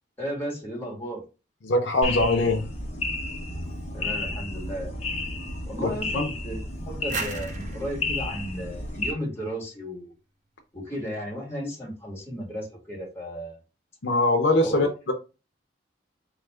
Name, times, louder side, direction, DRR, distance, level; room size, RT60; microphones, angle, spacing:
voice 1, 0.2-1.2 3.9-4.9 5.6-6.1 6.4-6.6 6.9-10.1 10.7-13.6 14.6-14.9, equal, 15° left, -2 dB, 1.4 m, -34 dB
voice 2, 1.6-2.6 5.8-6.3 14.0-15.1, left 2 dB, 75° left, 4 dB, 0.6 m, -22 dB
sound 1, 2.0-9.1, left 2 dB, 35° left, 0.7 m, -32 dB
sound 2, 7.1-9.8, right 4 dB, 40° right, 0.5 m, -38 dB
4.1 x 2.4 x 3.2 m, 0.31 s
head